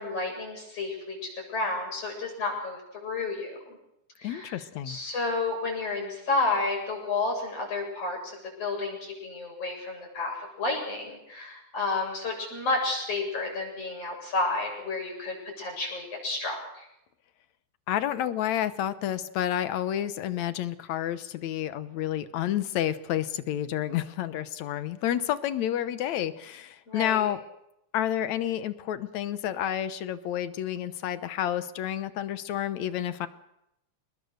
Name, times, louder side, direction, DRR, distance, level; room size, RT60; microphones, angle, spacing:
voice 1, 0.0-3.8 4.2-4.6 4.9-16.9 26.9-27.3, left 3 dB, 50° left, 1 dB, 8.6 m, -31 dB
voice 2, 4.2-5.0 17.9-27.4 27.9-33.3, left 11 dB, 70° left, 13 dB, 2.2 m, -30 dB
28.0 x 20.0 x 6.6 m, 0.82 s
omnidirectional pair, 3.5 m